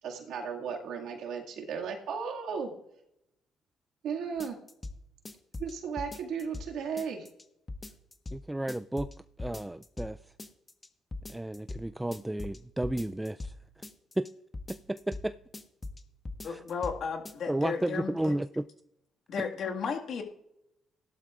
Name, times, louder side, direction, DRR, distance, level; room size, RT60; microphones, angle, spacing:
voice 1, 0.0-2.7 4.0-4.6 5.6-7.3, right 6 dB, 85° right, 0 dB, 2.0 m, -35 dB
sound 1, 4.4-5.0 5.3-6.7 7.0-7.4 7.7-8.4 8.7-9.1 9.4-10.1 10.4-10.9 11.1-11.8 12.1-13.5 13.8-14.3 14.5-15.3 15.5-16.0 16.3-17.0 17.3-17.4, left 2 dB, 25° left, 1.2 m, -40 dB
voice 2, 8.3-9.1 9.4-10.2 11.3-13.5 14.2-14.3 14.9-15.3 16.4-16.6 17.5-18.6 19.4-19.5, right 1 dB, 10° right, 11 dB, 0.3 m, -32 dB
voice 3, 16.4-18.4 19.3-20.2, left 6 dB, 65° left, 2 dB, 1.8 m, -34 dB
17.0 x 12.0 x 2.4 m, 0.82 s
cardioid pair, 90°, 0 cm